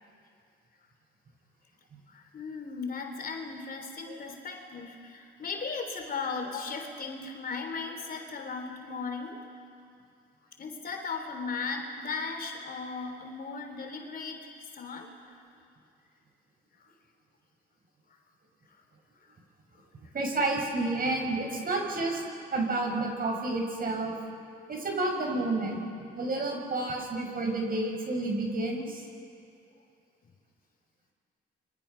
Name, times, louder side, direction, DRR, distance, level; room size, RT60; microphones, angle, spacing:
voice 1, 2.1-9.5 10.6-15.1 19.3-19.4 19.7-19.8, left 4 dB, 50° left, 4 dB, 3.4 m, -37 dB
voice 2, 20.1-22.2 22.5-24.2 24.7-25.8 26.1-29.0, right 2 dB, 45° right, 1 dB, 6.4 m, -30 dB
30.0 x 24.0 x 5.8 m, 2.3 s
cardioid pair, 90°, 20 cm